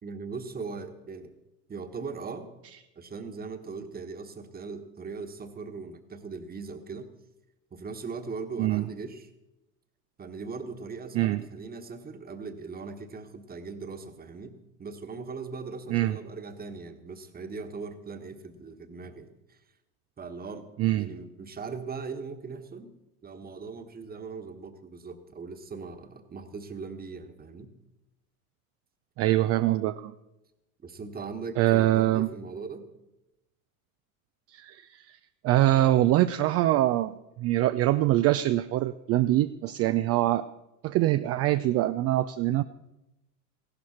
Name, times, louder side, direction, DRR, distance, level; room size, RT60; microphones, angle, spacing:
voice 1, 0.0-1.3 1.7-2.5 2.9-7.1 7.7-9.3 10.2-19.6 20.2-20.7 21.0-22.9 23.2-27.7 30.8-32.9, right 4 dB, 20° right, 7 dB, 1.3 m, -39 dB
voice 2, 29.2-30.1 31.6-32.3 34.5-35.2 35.4-40.5 40.8-42.6, right 15 dB, 35° right, 12 dB, 0.4 m, -24 dB
15.5 x 12.0 x 4.3 m, 0.94 s
hypercardioid pair, 85°, 43 cm